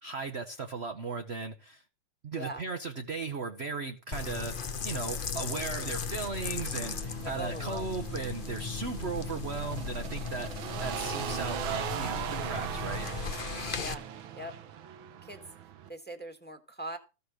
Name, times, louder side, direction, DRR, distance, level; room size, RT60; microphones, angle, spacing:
voice 1, 0.0-1.8 2.2-4.6 4.8-13.1, right 4 dB, 50° right, 0.7 m, -37 dB
sound 1, 4.1-13.9, left 6 dB, 65° left, 0.5 m, -37 dB
sound 2, 6.2-15.9, right 9 dB, 75° right, 1.7 m, -39 dB
voice 2, 7.2-7.9 10.3-10.8 13.8-14.0 14.3-14.5 15.2-15.4 15.9-17.0, right 1 dB, 5° left, 1.2 m, -41 dB
14.5 x 5.3 x 6.4 m
omnidirectional pair, 2.3 m